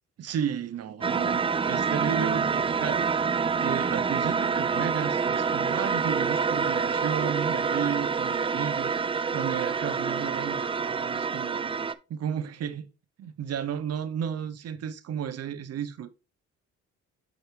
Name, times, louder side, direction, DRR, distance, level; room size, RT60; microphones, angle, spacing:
voice 1, 0.2-3.1 3.6-11.7 12.1-12.9 13.2-16.1, right 8 dB, 55° right, 0.7 m, -33 dB
sound 1, 1.0-11.9, right 5 dB, 20° right, 0.3 m, -27 dB
7.8 x 4.5 x 3.2 m
cardioid pair, 90°, 30 cm